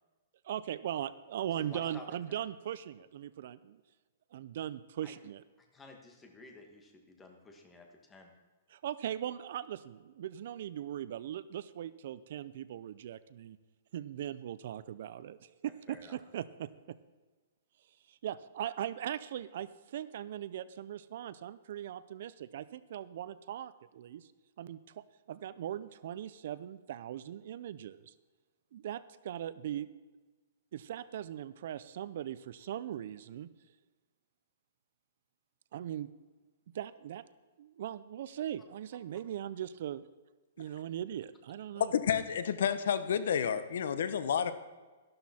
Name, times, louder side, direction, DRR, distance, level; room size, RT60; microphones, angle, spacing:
voice 1, 0.4-3.8 4.3-5.4 8.7-13.6 13.9-17.0 18.1-24.3 24.6-28.1 28.7-29.9 30.7-33.5 35.7-36.1 36.7-37.2 37.6-40.0 40.6-41.9, right 11 dB, 50° right, 16 dB, 0.5 m, -40 dB
voice 2, 1.6-2.4 5.0-5.2 5.7-8.3 15.9-16.2, left 2 dB, 10° left, 3 dB, 1.4 m, -52 dB
voice 3, 41.8-44.5, left 8 dB, 65° left, 13 dB, 0.8 m, -30 dB
12.5 x 12.0 x 4.3 m, 1.3 s
hypercardioid pair, 170°, 0 cm